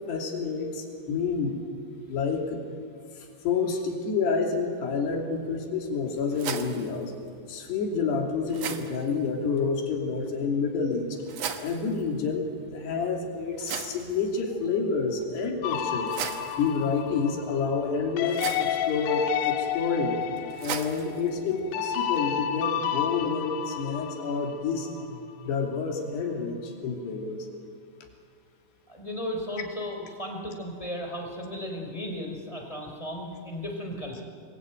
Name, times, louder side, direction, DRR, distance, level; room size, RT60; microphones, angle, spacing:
voice 1, 0.1-1.6 2.1-2.6 3.2-7.1 7.5-11.2 11.6-16.1 16.6-20.2 20.6-27.5, left 5 dB, 70° left, 2 dB, 4.9 m, -29 dB
sound 1, 5.3-22.3, right 7 dB, 70° right, 1.6 m, -41 dB
sound 2, 15.6-25.0, left 10 dB, 90° left, 3.5 m, -31 dB
voice 2, 28.9-34.2, left 1 dB, 10° left, 2 dB, 3.3 m, -35 dB
26.5 x 22.0 x 9.0 m, 2.3 s
omnidirectional pair, 4.9 m